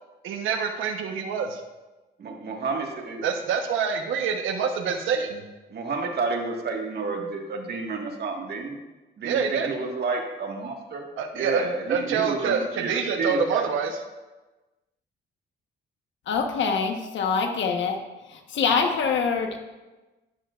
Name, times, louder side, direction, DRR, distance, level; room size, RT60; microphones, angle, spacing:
voice 1, 0.2-1.6 3.2-5.4 9.2-9.7 11.2-11.6 11.9-13.9, right 6 dB, 85° right, 5 dB, 1.1 m, -26 dB
voice 2, 2.2-3.2 5.7-8.8 9.2-11.0 11.3-13.7, right 4 dB, 55° right, 1 dB, 1.8 m, -30 dB
voice 3, 16.3-18.0 18.3-19.6, left 5 dB, 70° left, 4 dB, 1.3 m, -25 dB
12.0 x 11.0 x 2.5 m, 1.1 s
cardioid pair, 90°, 20 cm